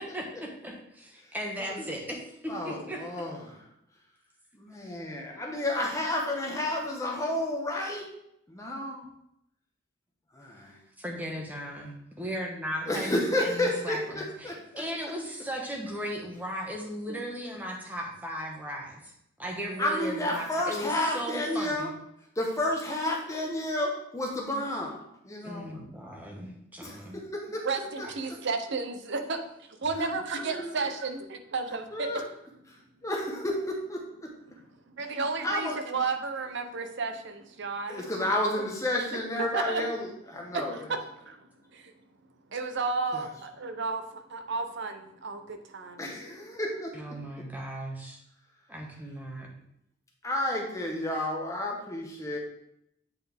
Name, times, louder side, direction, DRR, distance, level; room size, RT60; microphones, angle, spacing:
voice 1, 0.0-3.1 10.6-10.7 11.0-19.1 19.4-21.9 25.4-27.2 28.0-28.1 46.9-48.2 48.7-49.5, equal, 10° right, -1 dB, 1.2 m, -37 dB
voice 2, 2.5-3.6 4.5-8.1 8.5-9.1 10.3-10.8 12.8-14.8 17.1-17.2 19.8-21.9 22.3-25.7 26.8-27.7 28.0-28.4 30.0-30.1 30.4-30.9 31.9-32.2 33.0-34.3 35.4-35.8 37.9-40.8 43.1-43.3 46.0-47.4 50.2-52.4, left 1 dB, 15° left, -1 dB, 1.1 m, -31 dB
voice 3, 27.6-29.4 29.8-31.2 31.5-32.1 34.9-38.3 39.5-39.9 40.5-40.8 41.2-41.4 41.7-41.9 42.5-46.1, right 4 dB, 60° right, 7 dB, 0.7 m, -32 dB
8.3 x 4.3 x 3.5 m, 0.76 s
head